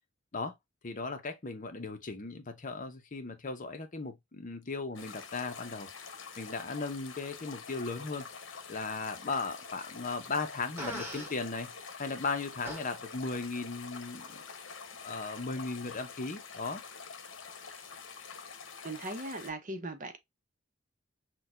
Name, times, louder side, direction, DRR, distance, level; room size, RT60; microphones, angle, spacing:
voice 1, 0.8-5.9 6.4-11.7 12.0-14.4 15.0-16.8, left 4 dB, 45° left, 0.8 m, -37 dB
sound 1, 5.0-19.5, left 5 dB, 75° left, 0.9 m, -46 dB
Fart, 10.8-11.3 12.6-12.8, equal, 10° right, 1.3 m, -39 dB
voice 2, 18.8-20.2, right 2 dB, 45° right, 0.8 m, -39 dB
6.1 x 2.3 x 2.4 m
head